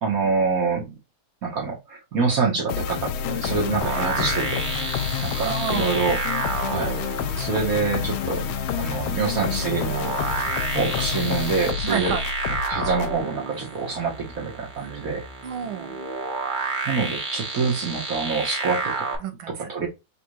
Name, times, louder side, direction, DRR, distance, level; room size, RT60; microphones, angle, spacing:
voice 1, 0.0-0.9 1.4-4.9 5.2-6.2 6.7-7.0 7.4-8.4 8.7-10.1 10.7-12.1 12.7-15.2 16.9-19.1 19.7-19.9, right 4 dB, 50° right, 1.4 m, -26 dB
sound 1, 2.7-13.2, left 8 dB, 85° left, 1.4 m, -28 dB
sound 2, 3.8-19.2, right 4 dB, 35° right, 0.9 m, -31 dB
voice 2, 5.4-6.0 11.8-12.3 15.4-16.0 19.2-19.7, right 7 dB, 85° right, 1.8 m, -30 dB
4.2 x 2.4 x 4.6 m
omnidirectional pair, 2.2 m